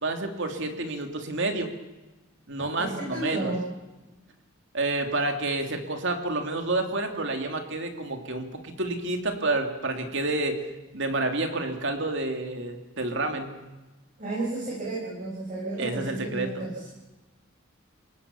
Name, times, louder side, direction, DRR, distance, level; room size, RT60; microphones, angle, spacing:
voice 1, 0.0-1.7 2.5-3.5 4.7-10.6 10.9-13.5 15.8-16.5, right 2 dB, 60° right, 5 dB, 3.0 m, -29 dB
voice 2, 2.6-3.6 14.2-16.9, right 2 dB, 35° right, -5 dB, 7.1 m, -32 dB
29.0 x 18.0 x 7.1 m, 1.1 s
head